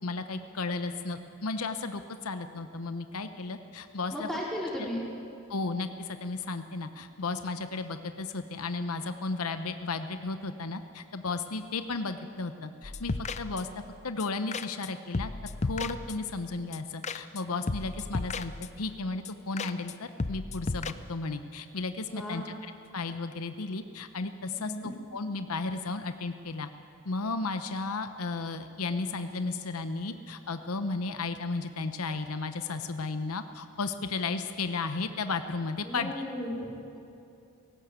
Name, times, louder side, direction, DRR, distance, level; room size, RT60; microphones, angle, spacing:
voice 1, 0.0-4.3 4.8-4.9 5.5-13.7 14.0-15.3 15.6-18.5 18.8-26.7 27.0-36.1, left 3 dB, 80° left, 9 dB, 0.9 m, -34 dB
voice 2, 4.1-5.0 22.1-22.5 24.5-24.9 35.8-37.0, equal, ahead, -5 dB, 4.4 m, -35 dB
sound 1, 12.8-13.9 14.2-14.3 14.5-14.9 15.1-16.4 16.7-16.8 17.0-17.4 17.7-18.9 19.2-19.3 19.6-19.9 20.2-20.9, left 3 dB, 30° left, 0.5 m, -35 dB
18.0 x 17.5 x 8.2 m, 2.7 s
head